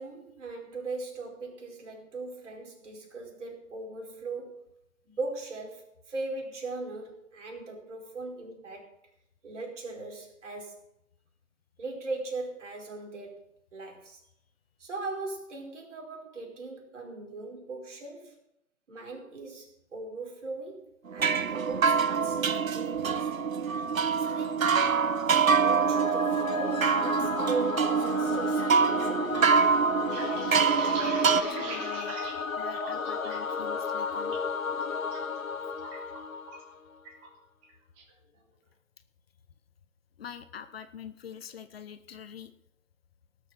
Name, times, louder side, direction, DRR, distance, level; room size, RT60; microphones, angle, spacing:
voice 1, 0.0-4.7 5.0-8.9 9.4-10.8 11.8-13.4 13.7-14.2 14.8-18.4 18.9-23.3 24.3-24.7 25.6-29.5, right 3 dB, 60° right, 1 dB, 4.9 m, -39 dB
sound 1, 21.1-31.4, right 6 dB, 90° right, 0.9 m, -25 dB
Singing / Musical instrument, 25.7-37.0, left 5 dB, 85° left, 1.0 m, -34 dB
sound 2, 30.1-33.5 33.9-34.4 34.8-35.2 35.5-36.7 37.0-37.3 37.6-38.1, right 3 dB, 20° right, 2.4 m, -40 dB
voice 2, 30.8-32.2 32.6-34.4 40.2-42.5, left 8 dB, 45° left, 10 dB, 1.3 m, -45 dB
18.5 x 6.9 x 6.5 m, 0.79 s
figure-of-eight pair, 140°, 40 cm